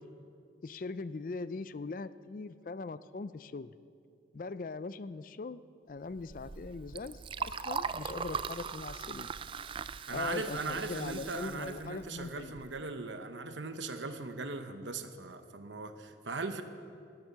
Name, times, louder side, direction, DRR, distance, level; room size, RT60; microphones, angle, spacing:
voice 1, 0.6-3.7 4.3-5.6 5.9-9.3 10.1-12.6, left 3 dB, 45° left, 15 dB, 0.4 m, -41 dB
Liquid, 6.1-12.8, right 5 dB, 30° right, 0.3 m, -40 dB
voice 2, 10.1-16.6, right 3 dB, 85° right, 8 dB, 1.0 m, -39 dB
17.0 x 10.5 x 7.2 m, 2.4 s
head